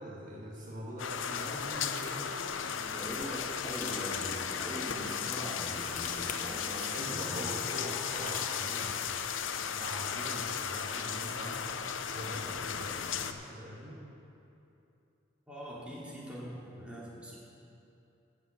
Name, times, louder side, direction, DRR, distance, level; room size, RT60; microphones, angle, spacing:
voice 1, 0.0-2.6 6.9-9.0 9.7-14.0, equal, 45° right, -4 dB, 1.5 m, -43 dB
sound 1, 1.0-13.3, left 7 dB, 80° left, 0.6 m, -35 dB
sound 2, 2.0-2.3 3.6-4.2 5.7-6.4 7.9-8.7, left 6 dB, 40° left, 0.8 m, -44 dB
voice 2, 2.8-7.5 15.5-17.4, equal, 5° right, -7 dB, 2.5 m, -42 dB
14.0 x 5.2 x 8.1 m, 2.8 s
head